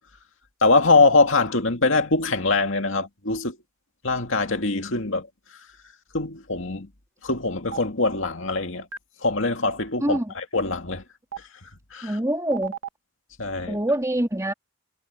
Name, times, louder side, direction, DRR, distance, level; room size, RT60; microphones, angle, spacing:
voice 1, 0.6-3.6 4.0-5.3 6.1-6.9 7.2-8.9 9.2-11.0 11.9-12.2 13.4-13.8, left 3 dB, 65° left, 2.3 m, -22 dB
Stream, 7.7-7.8 8.9-9.0 10.1-10.2 11.3-11.4 12.5-12.9, right 8 dB, 90° right, 2.1 m, -32 dB
voice 2, 10.0-10.3 12.0-12.7 13.7-14.5, right 1 dB, 15° right, 2.7 m, -25 dB
head